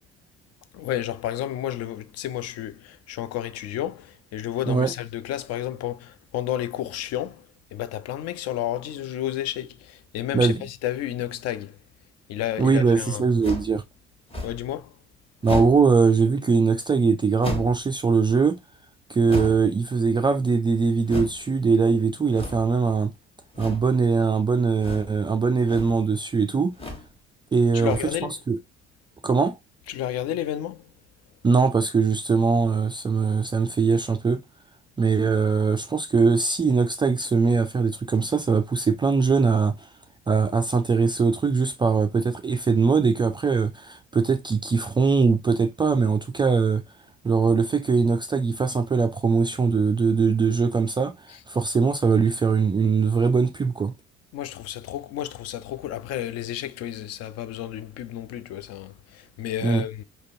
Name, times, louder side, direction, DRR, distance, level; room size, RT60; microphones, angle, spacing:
voice 1, 0.7-11.8 12.3-13.2 14.4-15.0 27.7-28.4 29.9-30.9 54.3-60.0, left 12 dB, 45° left, 0.5 m, -31 dB
voice 2, 12.6-13.8 15.4-18.6 19.1-23.1 23.6-26.7 27.5-28.0 28.5-28.6 29.2-29.6 31.4-34.4 35.0-39.7 40.3-46.8 47.2-51.1 51.5-53.9 59.6-59.8, right 5 dB, 15° right, 0.3 m, -21 dB
sound 1, 13.4-13.8 14.3-14.7 15.4-15.9 17.4-17.8 19.3-19.7 21.0-21.4 22.3-22.8 23.5-23.9 24.8-25.2 25.5-26.0 26.7-27.1 27.8-28.2, left 2 dB, 15° left, 1.3 m, -34 dB
5.0 x 2.1 x 2.5 m
figure-of-eight pair, 50°, 36 cm